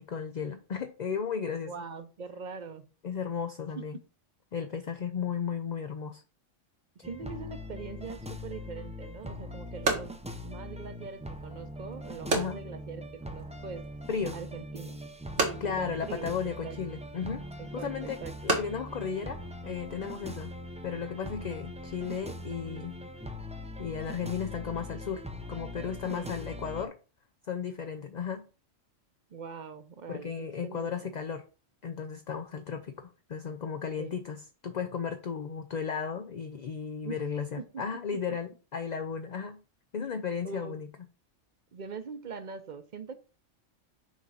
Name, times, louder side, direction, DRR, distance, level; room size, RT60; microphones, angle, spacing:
voice 1, 0.0-1.7 3.0-4.0 4.5-6.2 12.3-12.6 14.1-14.4 15.6-17.4 17.7-20.5 20.8-22.9 23.8-25.2 25.5-26.9 27.5-28.4 30.1-31.4 31.8-39.6 39.9-40.9, left 6 dB, 50° left, 8 dB, 0.5 m, -35 dB
voice 2, 1.6-2.9 7.0-10.2 10.4-13.8 14.3-15.0 15.4-16.8 17.6-18.3 26.1-26.3 29.3-31.2 34.0-34.1 37.0-37.2 40.4-40.8 41.7-43.1, right 5 dB, 40° right, 10 dB, 0.8 m, -42 dB
sound 1, 7.0-26.9, left 1 dB, 10° right, 0.4 m, -42 dB
sound 2, 8.8-20.2, right 3 dB, 85° right, 1.9 m, -36 dB
6.3 x 3.8 x 5.6 m, 0.35 s
omnidirectional pair, 1.3 m